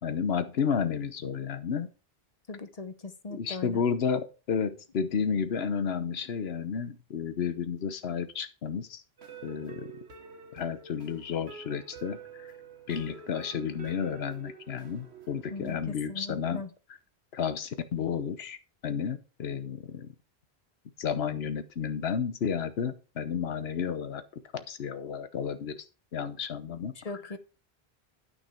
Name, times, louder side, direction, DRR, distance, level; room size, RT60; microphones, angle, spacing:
voice 1, 0.0-1.9 3.4-9.0 9.4-9.9 10.5-12.5 12.9-16.6 17.3-18.6 18.8-20.1 21.0-24.2 24.5-25.8 26.1-26.9, left 7 dB, 75° left, 1.1 m, -32 dB
voice 2, 2.5-3.8 15.5-16.7 26.9-27.4, left 3 dB, 40° left, 0.8 m, -39 dB
sound 1, 9.2-15.8, right 6 dB, 85° right, 1.6 m, -48 dB
9.1 x 6.3 x 4.4 m
omnidirectional pair, 1.1 m